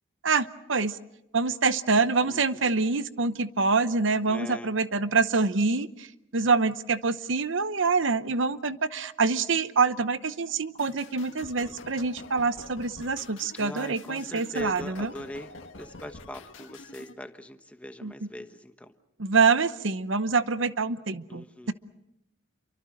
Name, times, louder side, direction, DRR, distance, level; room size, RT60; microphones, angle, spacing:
voice 1, 0.2-0.9 1.3-6.1 6.3-15.1 18.0-18.1 19.2-21.7, right 4 dB, 70° right, 13 dB, 0.9 m, -26 dB
voice 2, 2.2-2.8 4.2-4.8 13.5-18.9 21.3-21.7, left 1 dB, 5° left, 7 dB, 1.2 m, -41 dB
sound 1, 10.8-17.1, left 3 dB, 75° left, 1.9 m, -46 dB
28.5 x 24.5 x 6.5 m, 0.85 s
head